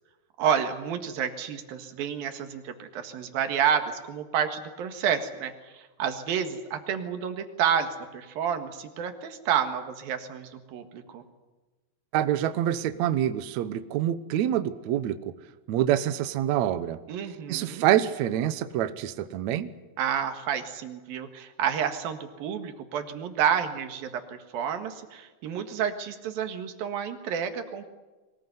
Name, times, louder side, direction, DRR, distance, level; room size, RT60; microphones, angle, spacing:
voice 1, 0.4-11.2 17.1-17.8 20.0-27.9, right 8 dB, 65° right, 7 dB, 3.3 m, -30 dB
voice 2, 12.1-15.3 15.7-17.0 17.5-19.7, right 11 dB, 85° right, 12 dB, 1.6 m, -26 dB
23.0 x 19.5 x 9.5 m, 1.2 s
omnidirectional pair, 4.7 m